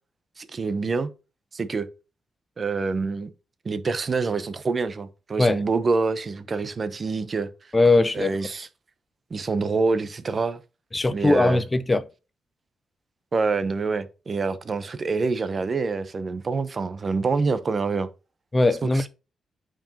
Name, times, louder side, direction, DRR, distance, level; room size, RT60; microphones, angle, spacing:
voice 1, 0.4-1.1 1.5-1.9 2.6-3.3 3.6-7.5 8.1-8.7 9.3-10.6 11.1-11.6 13.3-18.1 18.9-19.1, right 4 dB, 35° right, 0.7 m, -26 dB
voice 2, 7.7-8.4 10.9-12.0 18.5-19.1, left 2 dB, 15° left, 0.5 m, -20 dB
8.9 x 4.6 x 2.8 m
cardioid pair, 125°, 0 cm